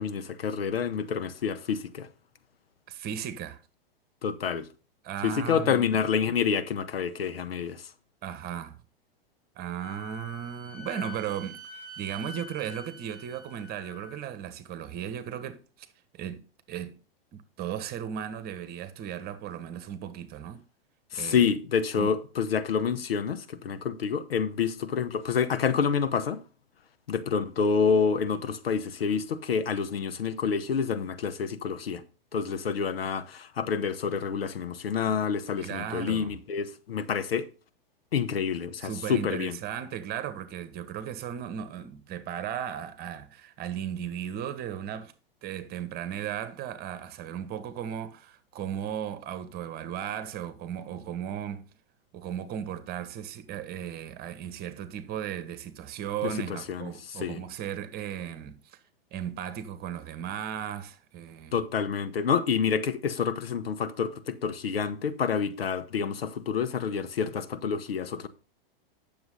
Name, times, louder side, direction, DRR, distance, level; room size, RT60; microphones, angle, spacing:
voice 1, 0.0-2.1 4.2-4.7 5.2-7.8 21.1-26.4 27.1-32.0 32.3-37.4 38.1-39.6 56.2-56.9 57.2-57.4 61.5-68.3, left 6 dB, 80° left, 1.1 m, -28 dB
voice 2, 2.9-3.6 5.0-5.9 8.2-8.8 9.6-15.9 16.1-16.4 16.7-17.0 17.3-20.6 21.1-21.5 22.0-22.1 35.6-36.4 38.8-45.1 45.4-51.7 52.1-58.8 59.1-61.6, right 9 dB, 35° right, 1.3 m, -36 dB
Wind instrument woodwind instrument, 9.8-14.2, left 1 dB, 15° right, 2.2 m, -45 dB
9.5 x 7.0 x 4.0 m
hypercardioid pair, 110°, 29 cm